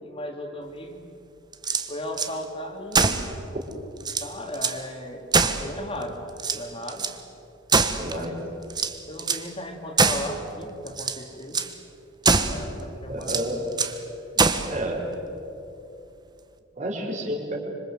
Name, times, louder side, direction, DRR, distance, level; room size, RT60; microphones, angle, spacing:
voice 1, 0.0-1.0 1.9-3.2 4.2-5.3 5.5-6.2 6.5-7.1 8.1-8.4 9.1-11.6 12.4-13.5, left 1 dB, 30° left, 3 dB, 2.9 m, -36 dB
sound 1, 1.5-2.3 2.9-3.3 3.7-3.8 4.0-4.8 5.3-6.0 6.4-7.2 7.7-8.3 8.7-9.5 10.0-10.4 10.9-11.2 11.5-11.7 12.2-12.6 13.2-14.0 14.4-14.7, right 4 dB, 20° right, 1.3 m, -23 dB
voice 2, 8.0-8.3 13.1-13.6 14.7-15.0 16.8-17.6, right 1 dB, 40° right, 0 dB, 4.6 m, -30 dB
26.0 x 26.0 x 8.0 m, 2.8 s
head